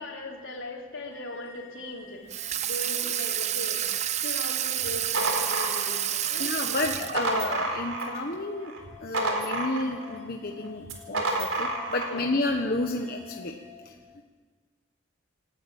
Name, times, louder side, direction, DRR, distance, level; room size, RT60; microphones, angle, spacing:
voice 1, 0.0-3.8 4.2-7.2 12.0-12.2 13.8-13.9, left 1 dB, 75° left, 1 dB, 3.8 m, -39 dB
sound 1, 1.1-13.7, left 10 dB, 10° left, 7.6 m, -51 dB
Water tap faucet / Sink (filling or washing), 2.3-7.5, right 11 dB, 35° right, 0.6 m, -29 dB
sound 2, 4.8-6.3 6.8-8.3 8.6-10.2 10.8-12.2, right 2 dB, 85° right, 4.2 m, -30 dB
voice 2, 6.4-8.7 9.0-13.5, left 2 dB, 50° left, 2 dB, 1.3 m, -30 dB
28.0 x 12.5 x 9.0 m, 1.5 s
head